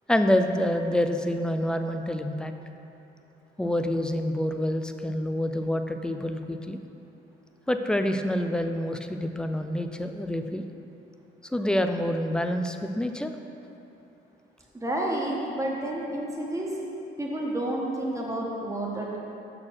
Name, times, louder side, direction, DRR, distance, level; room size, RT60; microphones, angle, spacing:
voice 1, 0.1-2.5 3.6-6.8 7.7-10.6 11.4-13.3, left 1 dB, 5° left, 7 dB, 0.4 m, -27 dB
voice 2, 14.7-16.7 17.2-19.2, right 1 dB, 15° right, -3 dB, 1.3 m, -30 dB
6.1 x 4.5 x 5.8 m, 2.9 s
cardioid pair, 90°, 20 cm